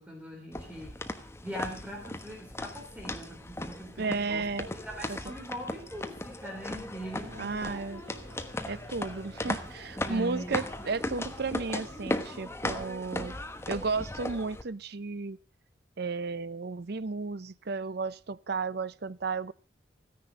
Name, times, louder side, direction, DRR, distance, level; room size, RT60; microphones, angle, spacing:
voice 1, 0.0-7.8 10.0-10.6, right 1 dB, 5° right, 0 dB, 3.6 m, -41 dB
sound 1, 0.5-14.6, left 1 dB, 15° left, 1.2 m, -37 dB
voice 2, 4.0-4.7 5.1-5.3 7.4-8.0 8.7-13.4 13.7-15.4 16.0-19.5, right 4 dB, 55° right, 16 dB, 0.6 m, -33 dB
sound 2, 7.0-12.4, right 2 dB, 80° right, 4.1 m, -51 dB
15.5 x 10.5 x 6.4 m, 0.38 s
head